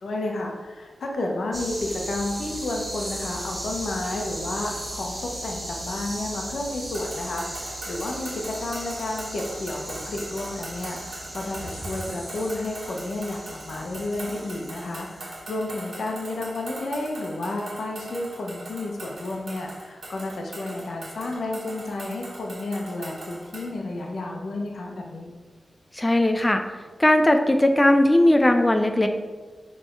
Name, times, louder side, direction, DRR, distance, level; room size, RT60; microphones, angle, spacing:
voice 1, 0.0-25.3, left 2 dB, 85° left, 1 dB, 1.0 m, -31 dB
sound 1, 1.5-15.4, right 1 dB, 20° right, 1.6 m, -36 dB
sound 2, 6.9-23.7, right 2 dB, 65° right, 1.4 m, -41 dB
voice 2, 25.9-26.6 27.0-29.1, left 1 dB, 15° left, 5 dB, 0.4 m, -18 dB
6.5 x 3.6 x 4.5 m, 1.3 s
wide cardioid pair, 110°, 0 cm